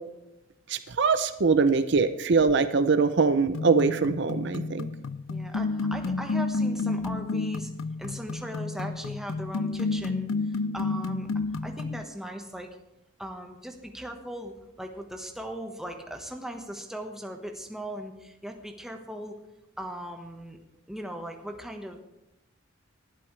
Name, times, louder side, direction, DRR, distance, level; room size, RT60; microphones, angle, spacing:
voice 1, 0.7-4.9, right 4 dB, 60° right, 11 dB, 0.6 m, -23 dB
sound 1, 3.5-12.0, left 3 dB, 85° left, 0.5 m, -30 dB
voice 2, 5.3-7.7 8.0-12.8 13.2-19.4 19.8-20.6 20.9-22.0, equal, ahead, 3 dB, 1.4 m, -39 dB
19.5 x 12.0 x 3.3 m, 0.93 s
head